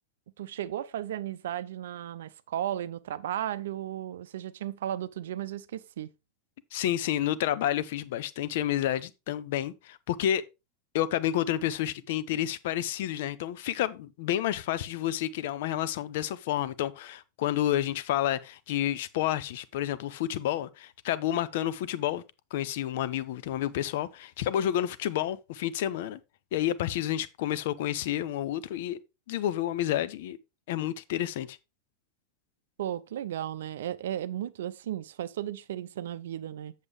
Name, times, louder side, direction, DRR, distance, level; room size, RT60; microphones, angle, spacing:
voice 1, 0.4-6.1 32.8-36.7, right 11 dB, 60° right, 0.5 m, -35 dB
voice 2, 6.7-10.4 10.9-22.2 22.5-26.2 26.5-29.0 29.3-30.4 30.7-31.6, left 12 dB, 50° left, 0.7 m, -30 dB
7.9 x 7.3 x 3.5 m
figure-of-eight pair, 90°, 0 cm